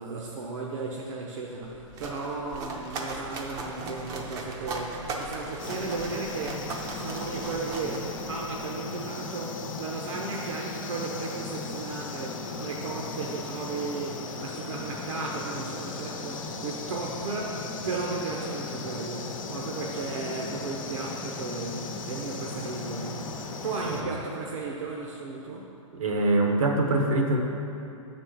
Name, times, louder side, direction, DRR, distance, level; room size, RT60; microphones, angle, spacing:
voice 1, 0.0-25.7, right 3 dB, 70° right, -2 dB, 0.8 m, -35 dB
sound 1, 1.6-8.6, right 2 dB, 20° right, 0.5 m, -38 dB
sound 2, 5.6-24.0, left 4 dB, 80° left, 0.8 m, -37 dB
voice 2, 25.9-27.4, right 2 dB, 85° right, 2 dB, 1.1 m, -24 dB
6.2 x 4.3 x 6.3 m, 2.7 s
hypercardioid pair, 155°, 17 cm